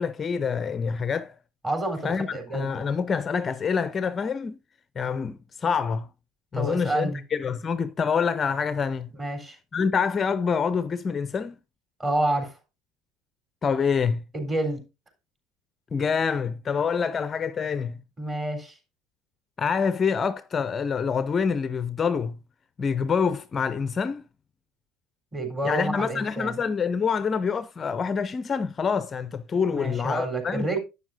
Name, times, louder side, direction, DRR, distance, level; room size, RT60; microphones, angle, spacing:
voice 1, 0.0-1.3 2.0-2.3 2.5-4.6 5.0-6.1 6.5-9.1 9.7-11.6 13.6-14.2 15.9-18.0 19.6-22.4 22.8-24.2 25.6-30.8, left 6 dB, 30° left, 0.5 m, -26 dB
voice 2, 1.6-2.8 6.5-7.2 9.2-9.6 12.0-12.6 14.3-14.8 18.2-18.8 25.3-26.6 29.7-30.8, right 1 dB, 20° right, 3.8 m, -28 dB
11.5 x 8.2 x 2.6 m
figure-of-eight pair, 70°, 0 cm